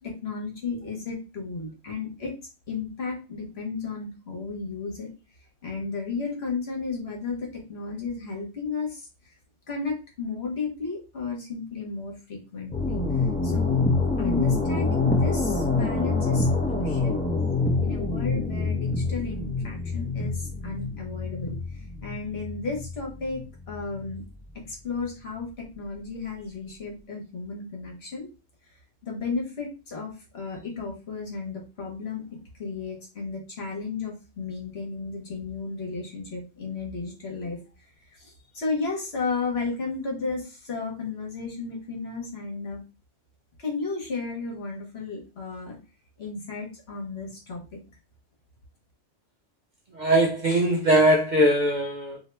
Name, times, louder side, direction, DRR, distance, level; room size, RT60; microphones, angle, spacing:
voice 1, 0.0-2.3 2.7-5.1 5.6-9.1 9.7-13.0 13.4-13.9 14.2-17.3 17.8-21.6 22.0-24.2 24.5-28.3 29.0-37.6 38.2-42.8 43.6-45.8 46.2-47.8, left 4 dB, 60° left, 1.3 m, -33 dB
sound 1, 12.7-24.2, left 3 dB, 10° left, 0.5 m, -26 dB
voice 2, 49.9-52.2, right 1 dB, 50° right, 0.6 m, -21 dB
2.8 x 2.7 x 3.3 m
omnidirectional pair, 1.2 m